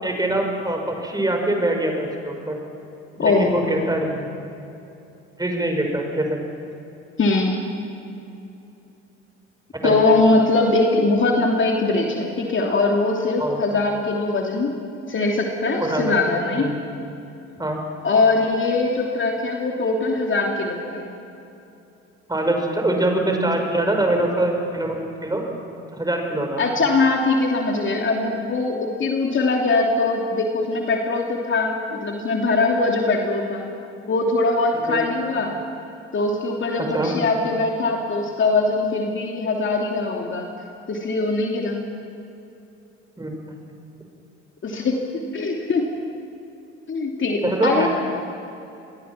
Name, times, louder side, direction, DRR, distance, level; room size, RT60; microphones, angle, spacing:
voice 1, 0.0-2.6 3.2-4.3 5.4-6.4 9.8-10.0 13.4-13.6 15.9-16.1 16.6-16.8 17.6-17.8 22.3-25.4 25.9-26.6 34.9-35.0 36.9-37.1 43.2-43.3 47.4-47.9, right 1 dB, 10° right, 2 dB, 5.6 m, -23 dB
voice 2, 3.2-3.5 7.2-7.5 9.8-14.8 15.1-16.7 18.0-21.1 26.6-33.7 34.1-35.5 36.1-40.5 40.9-41.8 44.6-45.0 45.3-45.9 46.9-47.9, left 3 dB, 35° left, 1 dB, 3.0 m, -21 dB
26.5 x 21.5 x 6.1 m, 2.8 s
figure-of-eight pair, 60°, 35 cm